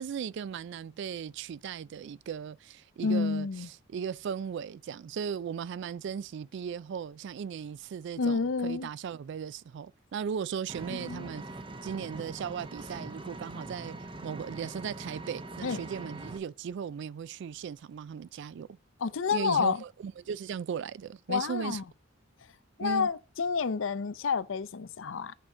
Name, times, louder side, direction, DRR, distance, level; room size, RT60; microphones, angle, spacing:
voice 1, 0.0-11.6 11.8-14.0 14.2-18.8 19.3-21.8 22.8-23.1, right 7 dB, 65° right, 0.3 m, -37 dB
voice 2, 3.0-3.7 8.2-8.9 10.9-11.3 15.6-15.8 19.0-19.8 21.3-21.8 22.8-25.3, left 5 dB, 80° left, 0.6 m, -29 dB
Vehicle, 10.7-16.4, right 2 dB, 25° right, 0.8 m, -42 dB
8.6 x 5.0 x 4.3 m
head